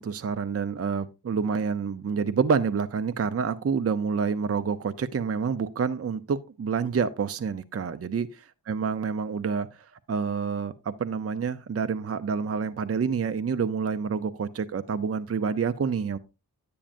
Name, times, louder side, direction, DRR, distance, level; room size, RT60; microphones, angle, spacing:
voice 1, 0.0-16.2, right 6 dB, 35° right, 0.6 m, -28 dB
10.0 x 8.5 x 2.5 m
cardioid pair, 65°, 40 cm